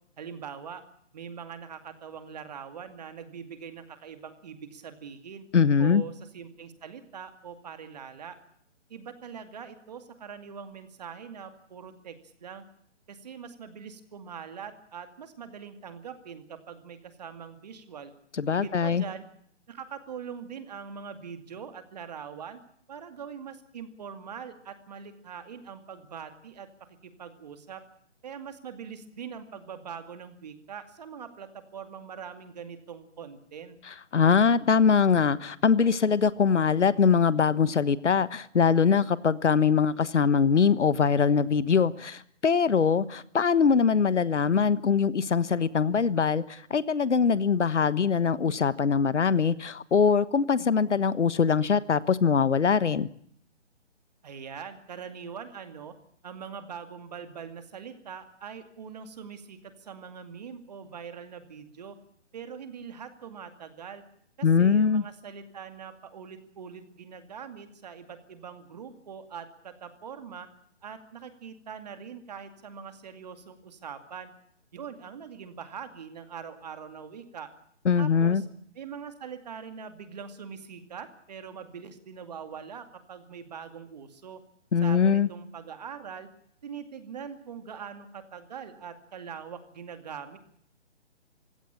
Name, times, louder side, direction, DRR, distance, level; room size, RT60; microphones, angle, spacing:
voice 1, 0.2-0.8 1.1-5.4 5.8-8.4 8.9-12.2 12.4-12.6 13.1-18.1 18.5-19.2 19.7-22.6 22.9-26.7 27.0-27.8 28.2-33.8 54.2-55.9 56.2-62.0 62.3-64.0 64.4-70.5 70.8-74.3 74.7-77.5 78.0-78.5 78.8-84.4 84.8-86.3 86.6-90.4, right 7 dB, 35° right, 9 dB, 2.3 m, -42 dB
voice 2, 5.5-6.0 18.4-19.0 34.1-53.1 64.4-65.0 77.8-78.4 84.7-85.3, left 6 dB, 75° left, 17 dB, 1.3 m, -22 dB
22.5 x 16.5 x 8.5 m, 0.66 s
hypercardioid pair, 165°, 35 cm